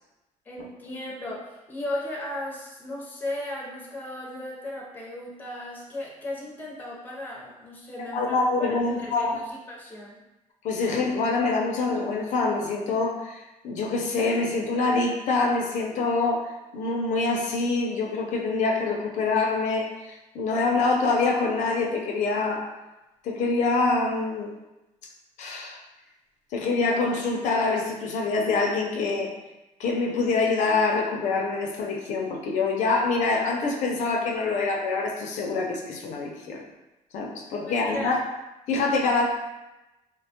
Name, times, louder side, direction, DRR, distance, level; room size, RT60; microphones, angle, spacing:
voice 1, 0.5-10.2 37.6-38.1, left 1 dB, 15° left, -3 dB, 0.5 m, -36 dB
voice 2, 8.0-9.4 10.6-22.7 23.2-24.6 25.4-25.8 26.5-29.3 29.8-36.6 37.1-38.2 38.7-39.3, left 3 dB, 65° left, 0 dB, 0.4 m, -25 dB
3.0 x 2.1 x 2.7 m, 1.0 s
cardioid pair, 160°, 13 cm